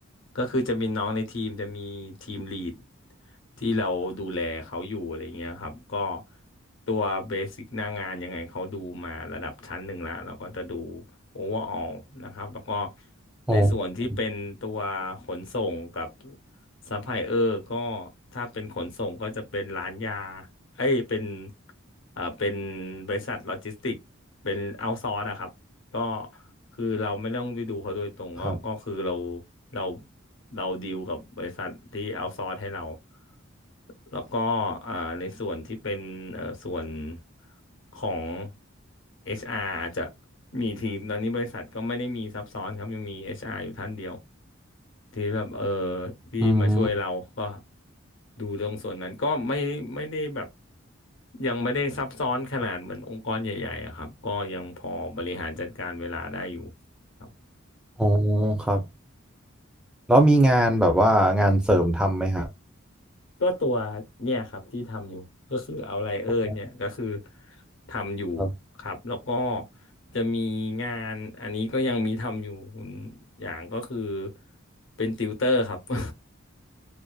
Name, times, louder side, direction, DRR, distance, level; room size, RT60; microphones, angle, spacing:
voice 1, 0.3-2.8 3.6-6.2 6.9-11.0 11.3-12.9 13.5-16.4 16.9-20.5 20.8-21.5 22.2-24.0 24.4-25.5 25.9-26.4 26.8-29.4 29.7-30.0 30.5-33.0 34.1-37.2 37.9-38.5 39.2-40.1 40.5-44.2 45.1-47.6 48.4-50.5 51.4-56.7 57.2-57.3 63.4-67.2 67.8-68.5 68.8-69.6 70.1-74.3 75.0-76.1, left 2 dB, 65° left, 0.8 m, -30 dB
voice 2, 46.4-46.9 58.0-58.8 60.1-62.5 68.4-68.5, right 1 dB, 5° right, 0.4 m, -20 dB
2.5 x 2.4 x 2.3 m
head